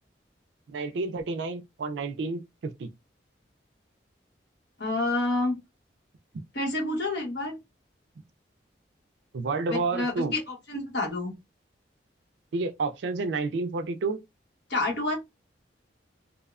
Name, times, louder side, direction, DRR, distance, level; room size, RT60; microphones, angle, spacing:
voice 1, 0.7-2.9 9.3-10.3 12.5-14.2, right 3 dB, 70° right, 0.4 m, -30 dB
voice 2, 4.8-5.6 6.5-7.6 9.7-11.3 14.7-15.2, left 2 dB, 65° left, 1.1 m, -28 dB
2.6 x 2.1 x 2.4 m
head